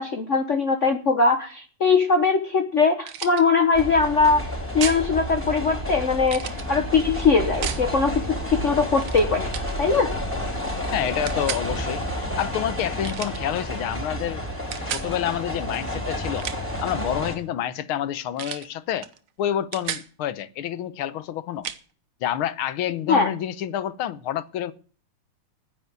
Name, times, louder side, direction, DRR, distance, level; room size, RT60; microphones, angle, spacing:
voice 1, 0.0-4.5 4.7-9.5 9.8-10.1 23.1-23.3, left 4 dB, 45° left, 1.2 m, -21 dB
sound 1, 3.0-3.4 4.8-5.0 6.3-6.6 7.6-7.9 9.0-9.2 9.5-9.7 11.3-11.7 13.0-13.4 14.7-15.1 16.2-16.8 18.4-18.7 19.0-19.2 19.5-20.1 21.6-21.8, right 10 dB, 90° right, 1.9 m, -32 dB
sound 2, 3.7-17.4, equal, 5° right, 3.9 m, -30 dB
voice 2, 10.9-14.5 14.9-16.5 16.8-19.1 19.4-21.7 22.2-24.7, left 11 dB, 85° left, 1.7 m, -28 dB
10.0 x 8.3 x 9.2 m
omnidirectional pair, 2.3 m